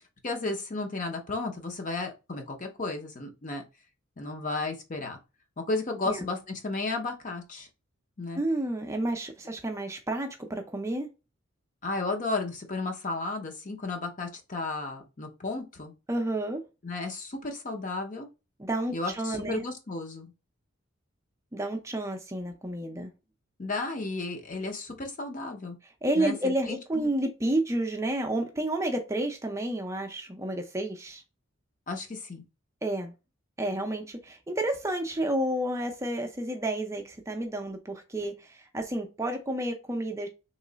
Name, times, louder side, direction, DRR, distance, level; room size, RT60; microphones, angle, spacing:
voice 1, 0.2-3.6 4.2-5.2 5.6-7.7 8.2-8.4 11.8-15.9 16.8-18.3 18.9-20.3 23.6-25.7 26.2-27.1 31.9-32.4, left 3 dB, 40° left, 0.7 m, -33 dB
voice 2, 8.3-11.1 16.1-16.6 18.6-19.6 21.5-23.1 26.0-31.2 32.8-33.1 33.6-40.3, right 1 dB, 15° right, 0.5 m, -30 dB
3.1 x 3.1 x 3.9 m
head